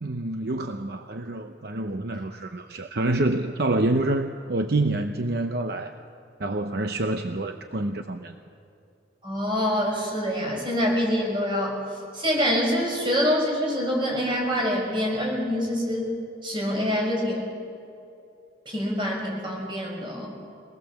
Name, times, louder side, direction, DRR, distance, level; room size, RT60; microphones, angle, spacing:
voice 1, 0.0-6.0 6.4-8.3, right 2 dB, 60° right, 6 dB, 0.8 m, -27 dB
voice 2, 9.2-11.8 12.1-16.1 16.4-17.6 18.7-20.3, equal, 25° right, -1 dB, 5.6 m, -25 dB
24.0 x 19.5 x 7.2 m, 2.7 s
head